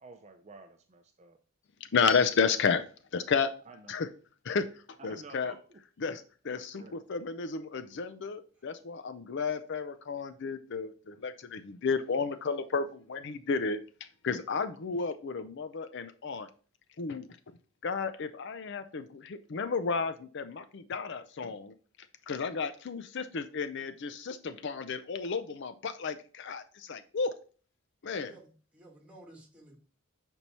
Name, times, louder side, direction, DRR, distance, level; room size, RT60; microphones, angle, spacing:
voice 1, 0.0-1.4 3.7-4.0 5.0-5.8 6.5-7.0, right 3 dB, 30° right, 6 dB, 0.5 m, -51 dB
voice 2, 1.9-2.8 3.1-3.5 3.9-4.1 4.4-4.6 5.0-5.5 6.0-13.8 14.2-16.5 17.0-17.3 17.8-21.7 22.3-27.3 28.0-28.3, left 5 dB, 55° left, 11 dB, 0.5 m, -32 dB
voice 3, 28.1-29.8, right 1 dB, 5° right, -1 dB, 1.8 m, -55 dB
6.7 x 4.5 x 4.2 m, 0.40 s
head